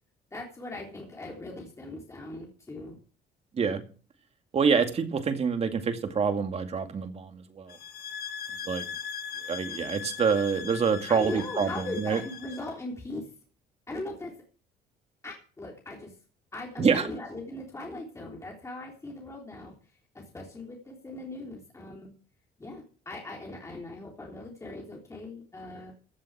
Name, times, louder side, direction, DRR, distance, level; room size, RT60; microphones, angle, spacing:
voice 1, 0.3-3.0 11.1-13.3 13.9-14.3 15.2-16.1 16.5-22.1 22.6-25.9, left 2 dB, 15° left, -1 dB, 3.5 m, -39 dB
voice 2, 4.5-7.8 8.6-8.9 9.4-12.2 16.8-17.1, right 6 dB, 40° right, 6 dB, 2.3 m, -26 dB
sound 1, 7.7-12.7, left 7 dB, 65° left, 1.4 m, -39 dB
15.5 x 7.5 x 6.2 m, 0.39 s
cardioid pair, 110°, 17 cm